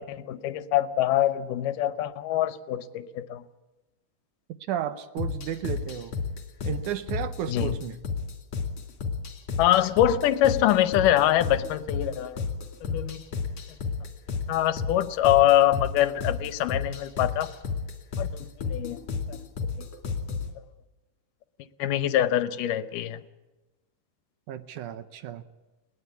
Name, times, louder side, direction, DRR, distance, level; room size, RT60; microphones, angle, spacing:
voice 1, 0.0-3.4 7.5-7.8 9.6-12.4 12.8-13.2 14.5-17.5 18.2-19.0 19.3-19.4 21.6-23.2, left 12 dB, 75° left, 2.4 m, -24 dB
voice 2, 4.7-6.1 6.6-8.0 24.5-25.4, right 10 dB, 70° right, 2.1 m, -33 dB
sound 1, 5.2-20.5, left 5 dB, 50° left, 3.2 m, -33 dB
21.0 x 18.5 x 8.3 m
omnidirectional pair, 3.9 m